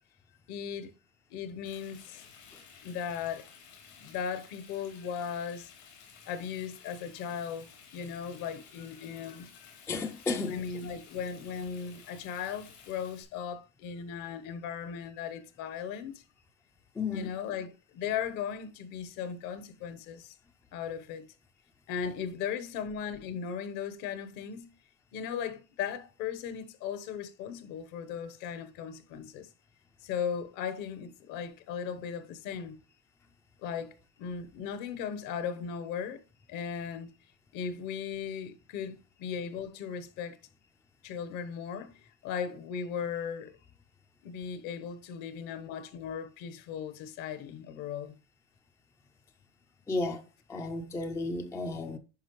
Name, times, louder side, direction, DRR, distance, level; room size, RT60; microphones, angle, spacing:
voice 1, 0.5-0.9 1.3-2.3 2.8-3.5 4.0-5.7 6.3-9.8 10.4-16.2 17.1-20.3 20.7-21.3 21.9-24.7 25.1-29.5 30.0-32.8 33.6-36.2 36.5-37.1 37.5-40.4 41.0-43.5 44.2-48.1, left 7 dB, 60° left, 1.1 m, -37 dB
Frying (food), 1.6-13.2, left 6 dB, 85° left, 4.2 m, -55 dB
voice 2, 9.9-10.6 17.0-17.3 49.9-50.2 50.5-52.0, left 3 dB, 10° left, 0.4 m, -33 dB
10.0 x 5.2 x 3.1 m
cardioid pair, 150°, 36 cm